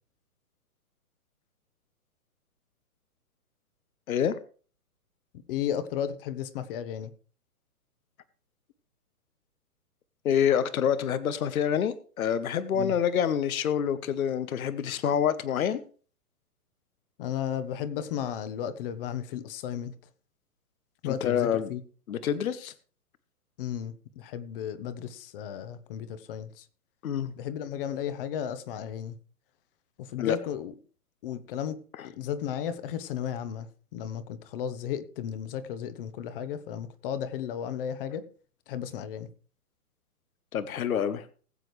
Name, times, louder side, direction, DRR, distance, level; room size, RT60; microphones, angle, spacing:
voice 1, 5.5-7.1 12.7-12.9 17.2-19.9 21.0-21.8 23.6-26.7 27.4-29.2 30.0-30.7 31.2-31.8 32.0-38.3 38.7-39.3, left 9 dB, 35° left, 1.1 m, -34 dB
voice 2, 10.2-15.8 21.0-21.7 22.1-22.7 27.0-27.3 30.2-30.4 40.5-41.3, left 8 dB, 65° left, 1.1 m, -27 dB
20.0 x 7.7 x 3.2 m
hypercardioid pair, 130°, 45 cm